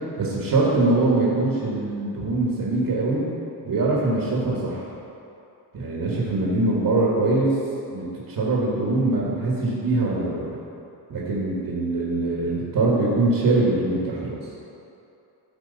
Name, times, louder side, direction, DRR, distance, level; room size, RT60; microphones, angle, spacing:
voice 1, 0.2-3.3 3.6-4.9 5.7-7.6 7.9-10.6 11.1-14.5, right 2 dB, 65° right, -5 dB, 1.7 m, -23 dB
13.5 x 4.6 x 4.1 m, 2.8 s
wide cardioid pair, 155°, 41 cm